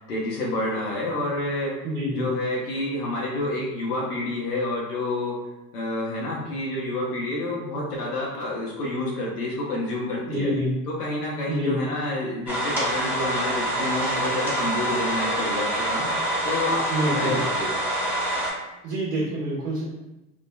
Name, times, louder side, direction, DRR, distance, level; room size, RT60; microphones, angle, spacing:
voice 1, 0.0-1.8 2.2-5.3 5.7-10.5 10.9-17.7, left 1 dB, 85° left, -4 dB, 0.9 m, -29 dB
voice 2, 1.8-2.3 10.3-10.7 11.5-11.8 16.9-17.4 18.8-19.8, equal, 70° right, -7 dB, 1.2 m, -27 dB
sound 1, 12.5-18.5, right 1 dB, 5° right, 0.9 m, -26 dB
3.6 x 2.1 x 2.2 m, 0.95 s
hypercardioid pair, 80°, 46 cm